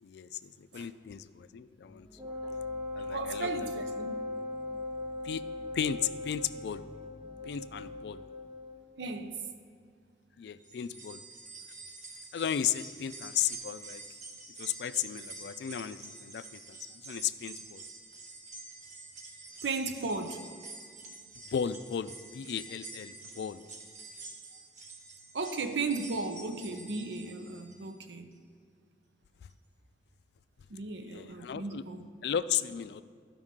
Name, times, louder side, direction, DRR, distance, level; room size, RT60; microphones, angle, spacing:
voice 1, 0.0-2.3 2.9-3.7 5.2-5.5 5.7-6.9 7.4-8.2 10.4-11.2 12.3-14.0 14.6-17.8 21.5-23.6 29.4-29.5 31.0-31.9 32.2-33.0, left 9 dB, 70° left, 0.3 m, -35 dB
sound 1, 1.8-8.0, left 1 dB, 40° left, 0.9 m, -55 dB
Wind instrument woodwind instrument, 2.2-8.8, left 2 dB, 20° right, 0.7 m, -39 dB
voice 2, 3.1-4.2 9.0-9.4 19.6-20.4 25.3-28.3 30.7-32.1, right 3 dB, 85° right, 0.7 m, -35 dB
sound 2, 10.6-27.9 28.3-28.4 29.5-29.6, right 3 dB, 40° right, 0.9 m, -48 dB
13.0 x 5.2 x 3.7 m
head